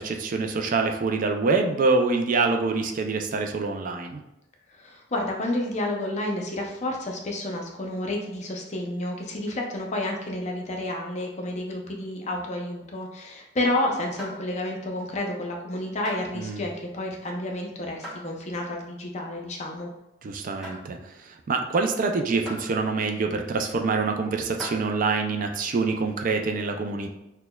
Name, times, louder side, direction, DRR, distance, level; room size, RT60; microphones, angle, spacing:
voice 1, 0.0-4.2 16.3-16.6 20.2-27.1, right 4 dB, 45° right, 4 dB, 0.3 m, -25 dB
voice 2, 4.8-19.9, left 1 dB, 35° left, 1 dB, 0.5 m, -30 dB
sound 1, 14.2-14.8 15.3-15.6 16.0-16.3 17.0-17.4 18.0-18.2 18.7-18.8 19.5-19.6 20.1-20.3 20.6-20.9 21.6-21.7 22.5-22.7 23.5-23.6 24.4-24.8, equal, 5° right, 1.2 m, -40 dB
6.0 x 2.2 x 2.2 m, 0.91 s
head